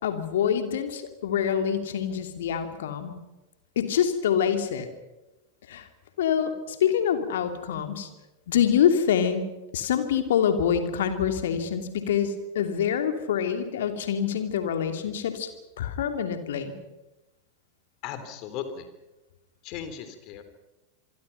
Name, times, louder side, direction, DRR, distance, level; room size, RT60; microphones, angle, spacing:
voice 1, 0.0-3.1 3.8-4.9 5.7-5.9 6.2-8.1 8.5-9.4 9.7-15.5 15.8-16.7, left 8 dB, 60° left, 7 dB, 2.8 m, -25 dB
voice 2, 18.0-18.9 19.6-20.4, left 8 dB, 40° left, 10 dB, 3.5 m, -36 dB
26.5 x 23.5 x 5.7 m, 1.0 s
figure-of-eight pair, 90°, 0 cm